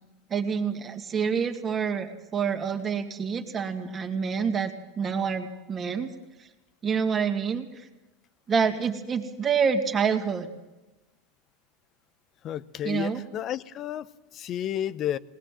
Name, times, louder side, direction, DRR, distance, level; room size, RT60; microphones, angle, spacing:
voice 1, 0.3-6.1 6.8-7.9 8.5-10.5 12.8-13.2, right 6 dB, 25° right, 2.3 m, -27 dB
voice 2, 12.4-15.2, left 11 dB, 40° left, 0.8 m, -32 dB
21.0 x 19.0 x 7.6 m
supercardioid pair, 125°, 0 cm